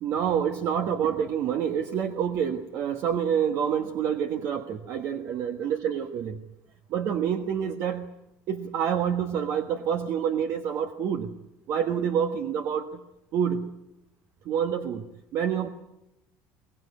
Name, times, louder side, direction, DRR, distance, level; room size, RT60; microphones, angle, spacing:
voice 1, 0.0-6.4 6.9-8.1 8.5-11.4 11.7-13.0 13.3-13.7 14.4-15.1 15.3-15.7, right 8 dB, 50° right, 6 dB, 1.4 m, -27 dB
23.0 x 19.0 x 9.5 m, 0.89 s
cardioid pair, 155°, 6 cm